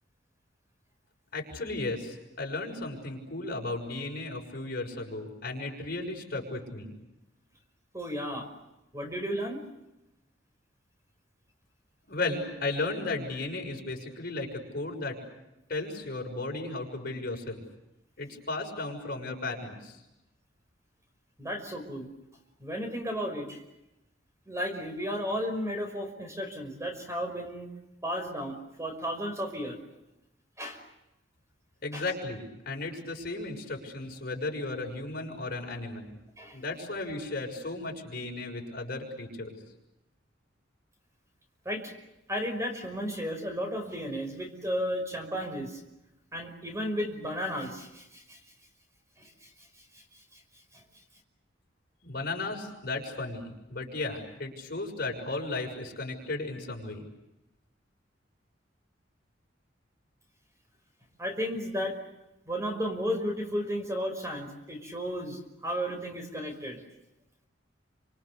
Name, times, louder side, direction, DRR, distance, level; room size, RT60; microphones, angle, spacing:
voice 1, 1.3-6.9 12.1-15.2 15.7-17.6 18.2-20.0 31.8-36.1 36.5-39.6 52.0-57.0, left 2 dB, 55° left, 2 dB, 6.5 m, -35 dB
voice 2, 7.9-8.5 8.9-9.6 21.4-22.1 22.6-23.6 24.5-27.7 28.0-29.8 30.6-30.8 31.9-32.0 36.4-36.6 41.7-41.9 42.3-45.8 46.3-48.4 49.2-49.5 50.7-50.8 61.2-62.0 62.5-66.8, equal, 15° right, 4 dB, 5.5 m, -33 dB
29.5 x 27.0 x 6.7 m, 0.92 s
head